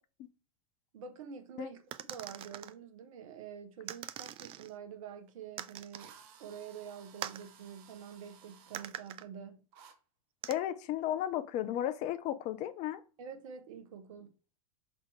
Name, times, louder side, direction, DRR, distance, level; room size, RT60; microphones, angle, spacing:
voice 1, 0.9-1.8 2.1-6.1 6.4-9.6 13.2-14.3, right 7 dB, 65° right, 1.3 m, -47 dB
sound 1, 1.9-2.7 3.9-4.7 5.6-6.1 7.2-7.5 8.7-9.3 10.4-10.5, right 12 dB, 30° right, 0.5 m, -43 dB
Drill, 5.3-5.4 5.9-8.9 9.7-10.0, right 7 dB, 50° right, 1.1 m, -57 dB
voice 2, 10.5-13.0, left 11 dB, 40° left, 0.7 m, -34 dB
6.0 x 4.0 x 4.8 m
hypercardioid pair, 100°, 18 cm